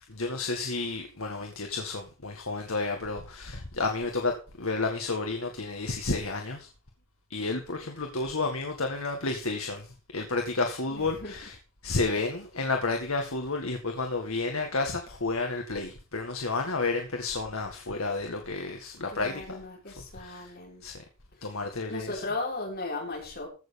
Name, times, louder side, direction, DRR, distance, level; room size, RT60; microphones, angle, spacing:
voice 1, 0.2-6.7 7.3-9.8 10.1-11.5 11.8-19.6 20.2-20.4 20.8-20.9 21.4-22.1, left 3 dB, 85° left, 2.0 m, -31 dB
voice 2, 10.9-11.3 19.1-20.8 21.9-23.5, left 2 dB, 50° left, 6.3 m, -36 dB
15.5 x 7.0 x 5.4 m
head